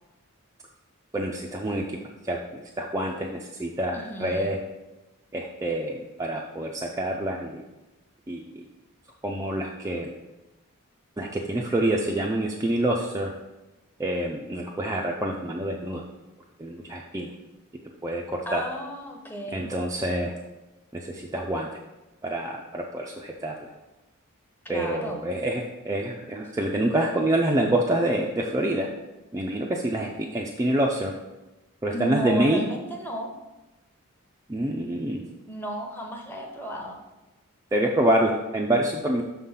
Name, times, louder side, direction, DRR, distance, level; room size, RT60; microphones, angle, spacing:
voice 1, 1.1-2.0 2.3-2.4 2.8-4.6 5.3-7.6 8.3-8.4 9.2-10.1 11.2-13.3 14.0-16.0 16.6-17.3 18.0-18.6 19.5-20.3 20.9-21.7 22.2-23.5 24.7-28.9 29.3-31.1 31.8-32.6 34.5-35.2 37.7-39.2, right 1 dB, 15° right, -1 dB, 0.4 m, -26 dB
voice 2, 3.9-4.5 18.5-19.7 24.6-25.2 31.9-33.3 35.5-37.0, right 1 dB, 10° left, 1 dB, 0.8 m, -34 dB
6.1 x 3.8 x 5.6 m, 1.0 s
head